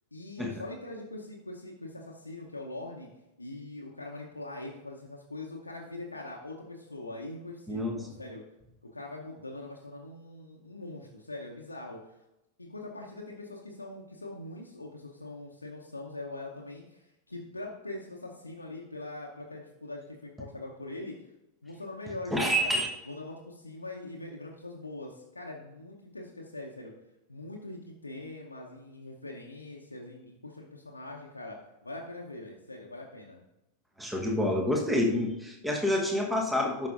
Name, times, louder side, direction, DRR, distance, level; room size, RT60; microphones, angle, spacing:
voice 1, 0.1-3.1 3.4-8.4 8.8-12.0 12.6-21.2 21.6-22.8 23.1-26.9 27.3-33.4, left 2 dB, 80° left, -1 dB, 0.8 m, -42 dB
voice 2, 7.7-8.1 22.3-22.9 34.0-36.9, left 1 dB, 5° right, 1 dB, 1.2 m, -28 dB
11.0 x 5.9 x 2.5 m, 0.93 s
figure-of-eight pair, 90°, 0 cm